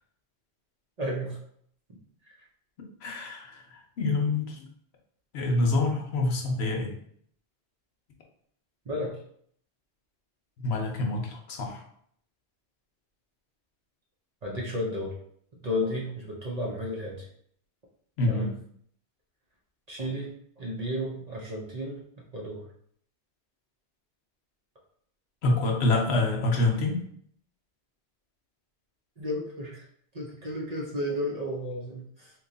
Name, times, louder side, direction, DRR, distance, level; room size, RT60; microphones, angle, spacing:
voice 1, 1.0-1.4 8.9-9.2 14.4-15.1 15.6-17.3 18.3-18.5 19.9-20.3 20.6-22.0 22.3-22.6 29.2-29.8 30.1-32.3, left 1 dB, 45° right, -3 dB, 0.6 m, -32 dB
voice 2, 3.0-4.7 5.3-7.0 10.6-11.8 18.2-18.5 25.4-27.0, left 2 dB, 70° left, 2 dB, 0.9 m, -26 dB
3.0 x 2.2 x 3.8 m, 0.64 s
omnidirectional pair, 1.1 m